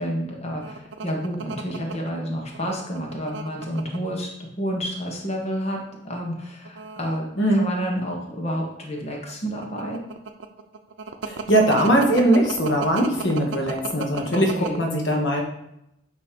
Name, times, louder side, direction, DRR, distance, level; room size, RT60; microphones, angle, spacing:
voice 1, 0.0-10.0 14.2-14.9, equal, 35° left, 0 dB, 1.3 m, -30 dB
sound 1, 0.6-4.0 4.7-5.2 5.5-5.7 6.5-8.2 8.6-14.8, right 4 dB, 80° right, 0.6 m, -34 dB
voice 2, 7.4-7.7 11.3-14.5 14.8-15.4, right 1 dB, 85° left, 1 dB, 1.3 m, -20 dB
8.7 x 3.1 x 5.1 m, 0.82 s
head